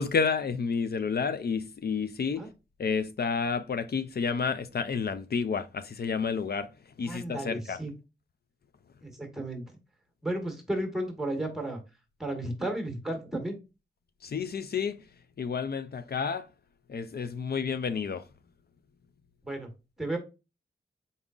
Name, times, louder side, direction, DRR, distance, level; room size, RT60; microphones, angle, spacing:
voice 1, 0.0-2.4 2.8-6.7 7.0-7.8 14.2-15.0 15.4-16.5 16.9-18.2, left 5 dB, 55° left, 0.4 m, -30 dB
voice 2, 7.0-7.9 9.0-9.6 10.2-11.8 12.2-13.6 19.4-19.7 20.0-20.2, right 1 dB, ahead, 1.2 m, -33 dB
4.1 x 3.6 x 2.3 m
wide cardioid pair, 90°, 20 cm